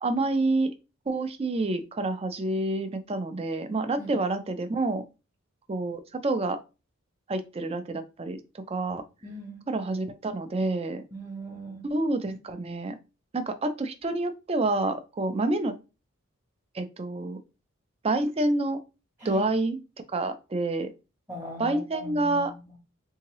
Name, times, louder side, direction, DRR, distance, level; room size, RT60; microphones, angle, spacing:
voice 1, 0.0-0.7 1.1-5.0 5.7-6.6 7.3-9.0 9.7-11.0 11.8-13.0 13.3-15.8 16.7-17.4 18.0-18.8 19.2-19.8 20.1-20.9 21.6-22.5, right 2 dB, 30° right, 0.4 m, -28 dB
voice 2, 9.2-9.6 11.1-11.9 19.2-19.4 21.3-22.8, equal, 10° right, 0.8 m, -40 dB
3.7 x 2.8 x 3.0 m
head